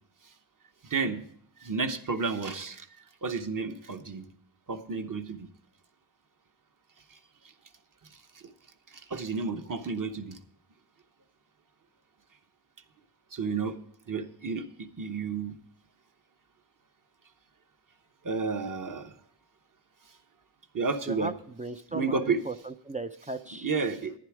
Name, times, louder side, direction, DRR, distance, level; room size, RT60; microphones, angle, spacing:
voice 1, 0.8-1.2 1.6-2.9 3.2-4.3 4.7-5.5 8.4-8.5 9.1-10.4 13.3-13.8 14.1-14.6 15.0-15.5 18.2-19.1 20.7-21.3 21.9-22.4 23.6-24.1, right 4 dB, 40° right, 8 dB, 1.0 m, -31 dB
voice 2, 21.6-23.7, right 2 dB, 15° right, 9 dB, 0.4 m, -37 dB
11.0 x 10.0 x 4.8 m, 0.66 s
cardioid pair, 80°, 48 cm